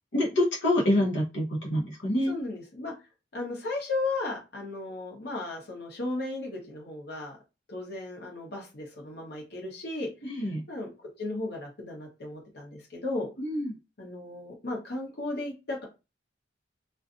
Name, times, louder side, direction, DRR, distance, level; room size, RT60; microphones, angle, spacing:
voice 1, 0.1-2.3 10.2-10.6 13.4-13.7, left 1 dB, 90° left, -2 dB, 0.9 m, -26 dB
voice 2, 2.3-2.9 3.3-7.4 7.7-10.1 10.7-10.9 11.2-13.3 14.0-15.8, left 2 dB, 60° left, -1 dB, 0.9 m, -35 dB
2.5 x 2.3 x 2.5 m, 0.27 s
head